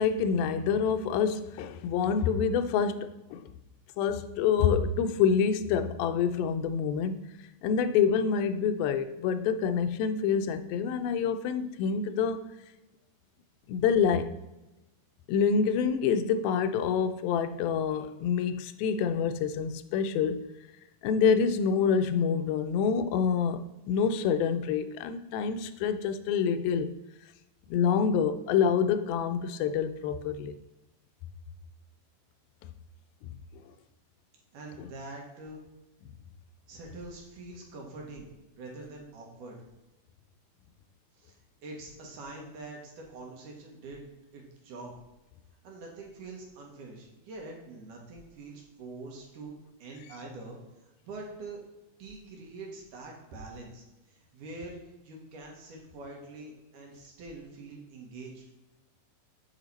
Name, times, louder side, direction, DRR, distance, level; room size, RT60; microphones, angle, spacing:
voice 1, 0.0-3.5 4.0-12.4 13.7-14.3 15.3-20.5 21.0-27.0 27.7-30.6 34.8-34.9, left 6 dB, 85° left, 2.4 m, -27 dB
voice 2, 34.5-35.6 36.7-38.3 38.6-39.6 41.1-41.3 41.6-44.9 45.6-49.5 49.8-50.6 51.0-51.6 52.0-53.8 54.1-54.8 55.0-58.4, right 2 dB, 70° right, 2.6 m, -44 dB
8.0 x 4.8 x 4.1 m
omnidirectional pair, 4.1 m